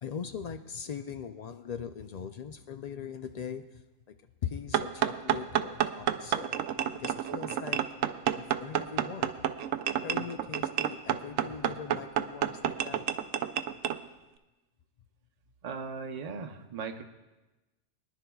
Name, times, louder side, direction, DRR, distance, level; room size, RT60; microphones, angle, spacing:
voice 1, 0.0-3.8 4.1-4.2 4.4-6.6 7.0-7.8 8.3-9.3 10.0-13.0, left 7 dB, 80° left, 7 dB, 0.3 m, -40 dB
sound 1, 4.7-14.0, right 10 dB, 85° right, 1.0 m, -30 dB
voice 2, 15.6-17.0, right 5 dB, 40° right, 6 dB, 0.7 m, -38 dB
23.0 x 11.0 x 2.3 m, 1.1 s
omnidirectional pair, 1.3 m